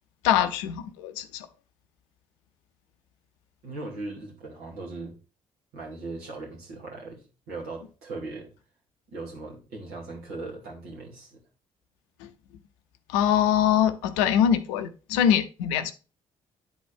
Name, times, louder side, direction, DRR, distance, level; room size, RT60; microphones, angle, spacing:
voice 1, 0.2-1.5 12.2-12.3 13.1-15.9, left 9 dB, 70° left, 0.6 m, -23 dB
voice 2, 3.6-5.2 5.7-8.5 9.1-11.4, right 3 dB, 65° right, 2.3 m, -39 dB
9.6 x 4.2 x 3.4 m
figure-of-eight pair, 40°, 17 cm